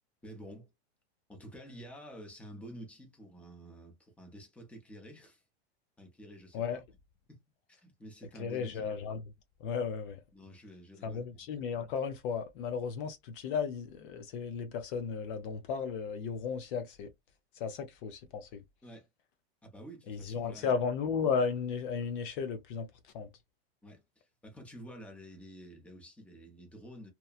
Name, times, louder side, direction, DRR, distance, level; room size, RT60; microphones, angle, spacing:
voice 1, 0.2-0.7 1.3-5.4 6.0-6.8 7.3-7.4 7.7-8.9 10.3-11.4 18.8-19.1 19.6-20.7 23.8-27.1, equal, 5° left, 0.8 m, -50 dB
voice 2, 8.4-9.2 9.6-10.2 11.0-17.1 17.6-18.6 20.1-22.9 23.1-23.3, left 6 dB, 55° left, 0.6 m, -34 dB
2.9 x 2.3 x 2.3 m
supercardioid pair, 145°, 33 cm